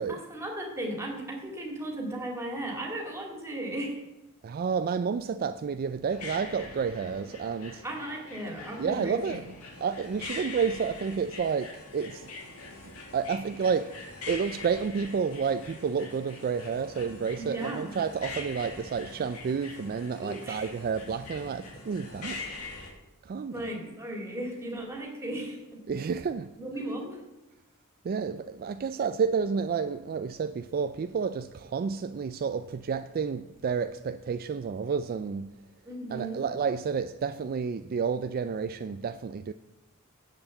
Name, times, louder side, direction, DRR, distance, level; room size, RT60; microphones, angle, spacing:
voice 1, 0.3-4.0 7.8-9.4 12.8-12.9 17.4-17.9 20.2-20.7 22.3-22.5 23.5-25.8 26.6-27.2 35.9-36.4, right 1 dB, 10° right, 2.3 m, -36 dB
voice 2, 4.4-7.8 8.8-9.4 9.8-12.3 12.6-14.0 14.3-22.4 23.2-23.7 25.9-26.5 28.0-35.5 36.1-39.5, right 6 dB, 45° right, 0.3 m, -30 dB
sound 1, 6.1-22.9, left 3 dB, 85° left, 2.1 m, -43 dB
7.9 x 7.0 x 7.7 m
head